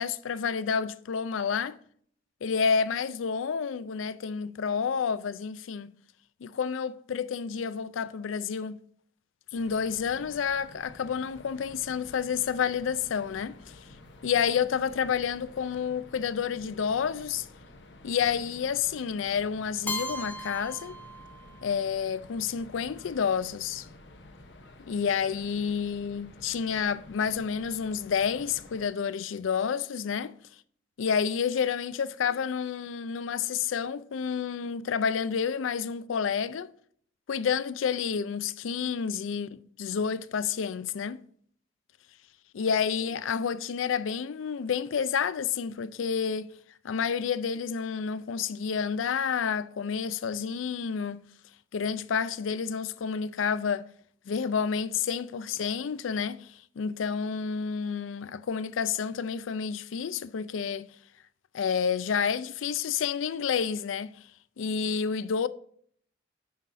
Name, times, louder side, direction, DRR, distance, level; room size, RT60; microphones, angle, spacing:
voice 1, 0.0-1.8 2.4-5.9 6.4-8.8 9.5-13.8 14.2-17.5 18.0-20.9 21.6-23.9 24.8-30.3 31.0-36.7 37.3-41.2 42.5-46.5 46.8-51.2 51.7-53.8 54.3-60.9 61.5-64.1 64.6-65.5, left 6 dB, 85° left, 0.4 m, -29 dB
sound 1, 9.6-28.9, left 2 dB, 65° left, 0.9 m, -51 dB
Keyboard (musical), 19.9-21.8, left 1 dB, 10° left, 0.4 m, -37 dB
9.5 x 4.1 x 4.6 m
head